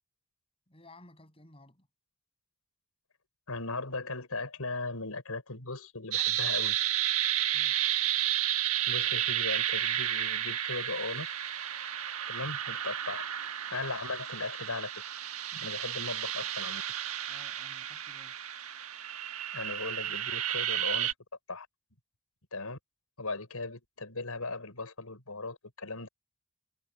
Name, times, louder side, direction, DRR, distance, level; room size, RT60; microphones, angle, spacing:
voice 1, 0.7-1.9 7.5-7.8 17.3-18.4, left 2 dB, 25° left, 7.2 m, -56 dB
voice 2, 3.5-6.8 8.9-11.3 12.3-13.3 13.7-14.9 15.5-16.8 19.5-21.1 21.5-21.7 22.5-22.8 23.2-26.1, left 3 dB, 85° left, 5.3 m, -38 dB
sound 1, 6.1-21.1, right 11 dB, 85° right, 1.5 m, -32 dB
head